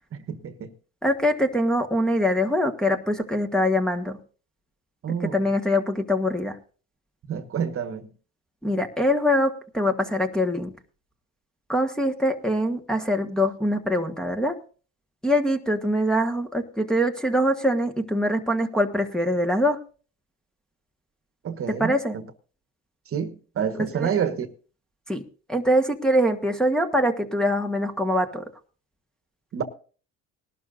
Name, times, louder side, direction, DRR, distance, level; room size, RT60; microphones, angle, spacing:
voice 1, 0.1-0.7 5.0-5.4 7.3-8.1 21.4-22.2 23.1-24.5 29.5-29.6, right 7 dB, 40° right, 1.4 m, -28 dB
voice 2, 1.0-4.2 5.2-6.6 8.6-10.7 11.7-14.5 15.2-19.8 21.7-22.1 23.8-24.1 25.1-25.2 25.5-28.4, equal, ahead, 1.4 m, -23 dB
20.0 x 12.0 x 2.6 m
cardioid pair, 105°, 33 cm